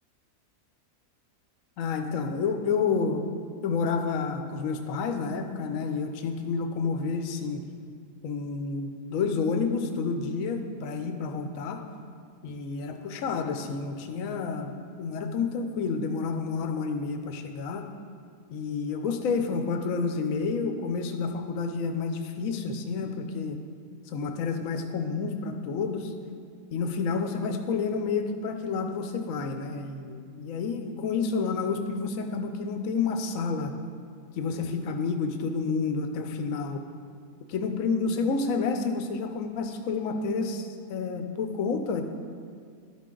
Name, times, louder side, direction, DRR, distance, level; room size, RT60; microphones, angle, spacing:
voice 1, 1.8-3.3 3.6-7.6 8.2-11.8 12.4-14.7 15.0-17.9 18.5-23.6 24.1-26.1 26.7-33.7 34.4-36.8 37.5-42.0, left 4 dB, 65° left, 6 dB, 1.0 m, -29 dB
12.0 x 5.6 x 3.8 m, 2.1 s
omnidirectional pair, 1.7 m